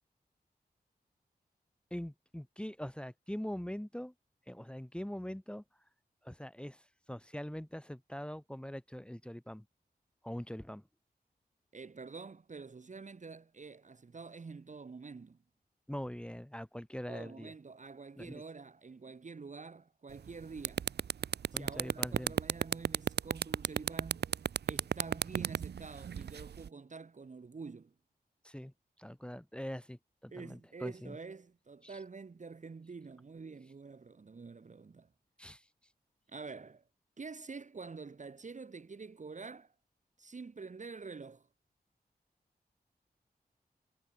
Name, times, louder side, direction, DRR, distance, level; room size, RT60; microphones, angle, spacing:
voice 1, 1.9-4.1 4.5-5.6 6.2-6.8 7.1-9.7 10.2-10.8 15.9-17.5 18.2-18.4 21.5-22.4 28.4-28.7 29.0-31.2 31.8-32.0 35.4-35.7, equal, 5° left, 1.7 m, -43 dB
voice 2, 11.7-15.4 17.1-20.9 21.5-24.3 24.7-27.9 30.3-35.1 36.3-36.8 37.2-39.7 40.2-41.5, right 4 dB, 45° right, 1.1 m, -47 dB
sound 1, 20.1-20.3 20.6-26.7, right 8 dB, 85° right, 0.6 m, -32 dB
wide cardioid pair, 65°, 17 cm